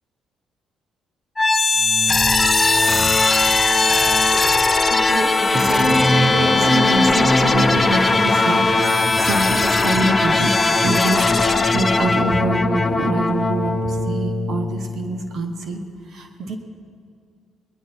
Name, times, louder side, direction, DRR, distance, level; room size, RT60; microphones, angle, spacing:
sound 1, 1.4-15.2, left 3 dB, 25° left, 0.7 m, -19 dB
voice 1, 4.9-16.6, right 2 dB, 60° right, 5 dB, 1.2 m, -26 dB
sound 2, 5.5-8.2, equal, 10° right, 1.3 m, -21 dB
20.5 x 11.0 x 4.5 m, 2.2 s
cardioid pair, 90°, 0 cm